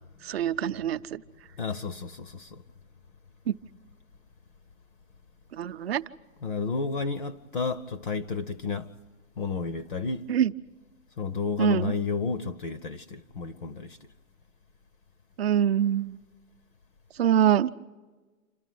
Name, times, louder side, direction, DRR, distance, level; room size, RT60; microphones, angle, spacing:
voice 1, 0.2-1.2 3.5-3.6 5.5-6.0 10.3-10.5 11.6-11.9 15.4-16.2 17.2-17.7, right 10 dB, 50° right, 0.6 m, -24 dB
voice 2, 1.6-2.6 6.4-8.9 9.4-10.3 11.2-14.0, left 4 dB, 40° left, 0.6 m, -31 dB
27.5 x 13.0 x 9.2 m
hypercardioid pair, 170°, 40 cm